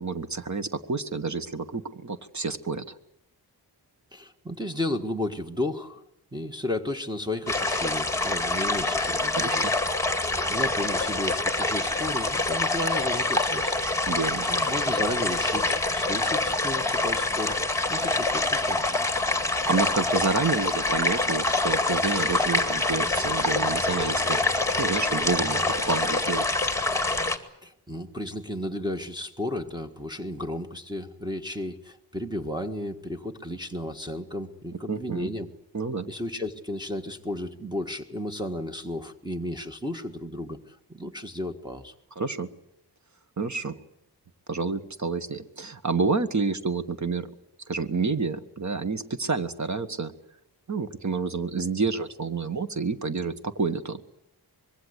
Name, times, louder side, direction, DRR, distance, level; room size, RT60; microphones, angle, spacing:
voice 1, 0.0-3.0 9.3-9.7 14.1-14.5 19.7-26.5 34.9-35.3 35.7-36.1 42.2-42.5 43.4-43.8 44.5-47.3 47.7-50.1 50.7-54.0, right 4 dB, 45° right, 10 dB, 1.5 m, -29 dB
voice 2, 4.1-6.0 6.3-9.7 10.5-13.8 14.5-18.9 27.6-35.5 36.1-41.9, left 1 dB, 10° right, 1 dB, 1.5 m, -33 dB
sound 1, 7.5-27.4, left 2 dB, 5° left, 2.2 m, -26 dB
25.0 x 21.5 x 8.2 m, 0.80 s
wide cardioid pair, 100°, 40 cm